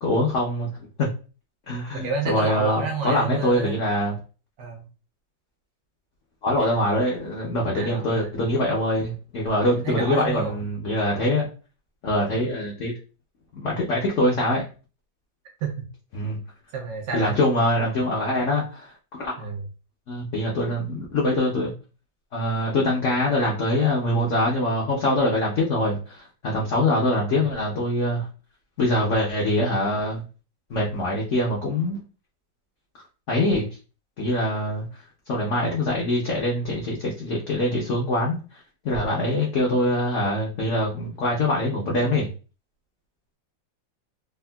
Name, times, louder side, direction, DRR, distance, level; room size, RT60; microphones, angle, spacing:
voice 1, 0.0-0.7 1.0-1.1 1.7-4.2 6.4-11.5 12.0-12.9 13.5-14.6 16.1-16.4 17.1-19.5 20.1-21.7 22.3-26.2 26.5-28.2 28.8-30.2 30.7-32.0 33.3-33.7 34.2-34.9 35.3-38.4 38.8-42.3, left 1 dB, 70° left, -3 dB, 0.7 m, -24 dB
voice 2, 1.9-3.8 4.6-4.9 6.7-6.8 7.7-8.3 9.6-10.6 12.3-12.4 15.6-15.8 16.7-17.4 19.4-19.6 27.3-27.5 39.1-39.2, right 5 dB, 65° right, 3 dB, 0.9 m, -30 dB
3.5 x 2.1 x 2.2 m, 0.35 s
omnidirectional pair, 2.0 m